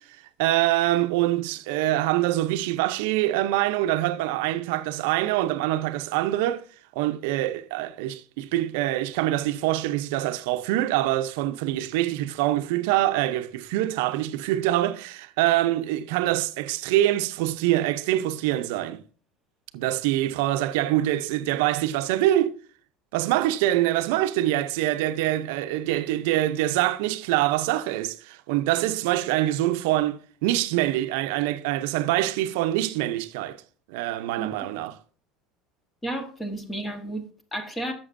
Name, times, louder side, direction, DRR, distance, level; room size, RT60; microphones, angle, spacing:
voice 1, 0.4-6.6 7.0-19.0 19.7-22.6 23.1-33.6 33.9-35.0, right 14 dB, 85° right, 0.7 m, -25 dB
voice 2, 36.0-37.9, right 1 dB, 10° left, 1.4 m, -32 dB
11.0 x 7.0 x 2.6 m
cardioid pair, 155°, 0 cm